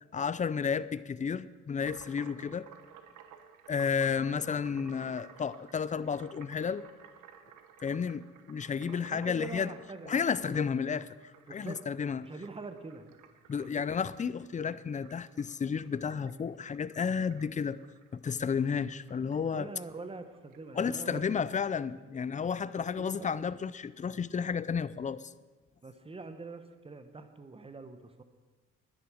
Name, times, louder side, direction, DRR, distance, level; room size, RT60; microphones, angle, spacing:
voice 1, 0.1-2.7 3.7-6.8 7.8-8.2 8.5-9.7 10.1-11.1 11.5-12.3 13.5-17.8 18.1-19.7 20.7-25.3, left 6 dB, 25° left, 0.4 m, -32 dB
sound 1, 1.8-20.9, right 8 dB, 90° right, 1.1 m, -56 dB
voice 2, 8.9-10.6 11.5-11.8 12.2-13.1 13.6-13.8 19.5-21.4 22.0-22.1 22.8-23.5 25.8-28.2, right 3 dB, 20° right, 1.1 m, -45 dB
10.5 x 10.5 x 6.3 m
cardioid pair, 90°, 30 cm